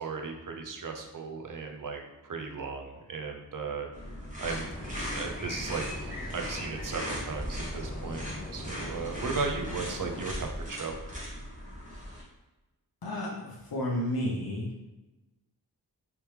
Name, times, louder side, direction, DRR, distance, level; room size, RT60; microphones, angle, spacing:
voice 1, 0.0-3.9 4.4-5.8 6.3-8.2 8.5-11.0, right 4 dB, 50° right, 3 dB, 0.6 m, -36 dB
sound 1, 3.9-12.2, equal, 20° right, 1.1 m, -38 dB
sound 2, 4.4-10.3, left 1 dB, 20° left, 0.6 m, -41 dB
voice 2, 13.0-14.7, left 1 dB, 55° left, -4 dB, 0.8 m, -32 dB
3.4 x 3.0 x 3.1 m, 1.1 s
wide cardioid pair, 70°, 43 cm